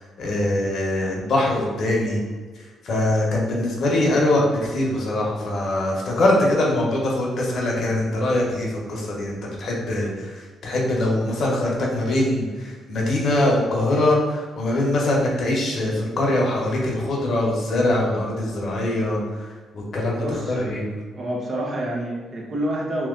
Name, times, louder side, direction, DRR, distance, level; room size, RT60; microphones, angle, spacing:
voice 1, 0.2-2.2 2.8-19.5 19.7-20.8, left 1 dB, 60° left, -2 dB, 1.1 m, -22 dB
voice 2, 20.2-20.7 21.1-23.1, right 1 dB, 40° right, -3 dB, 1.1 m, -28 dB
3.0 x 2.9 x 3.8 m, 1.4 s
cardioid pair, 90°, 0 cm